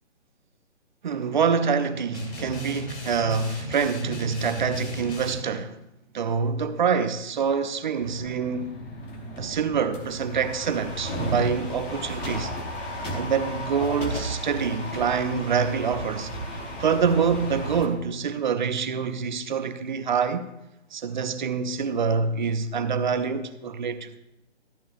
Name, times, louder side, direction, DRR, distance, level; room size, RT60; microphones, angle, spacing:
voice 1, 1.0-5.8 6.1-8.7 9.4-12.5 13.1-16.3 16.8-20.5 20.9-24.2, right 6 dB, 45° right, 0.6 m, -26 dB
sound 1, 2.1-5.4, equal, 70° left, 2.7 m, -36 dB
sound 2, 8.0-17.9, equal, 15° left, 0.7 m, -34 dB
13.5 x 9.0 x 2.4 m
figure-of-eight pair, 145°, 35 cm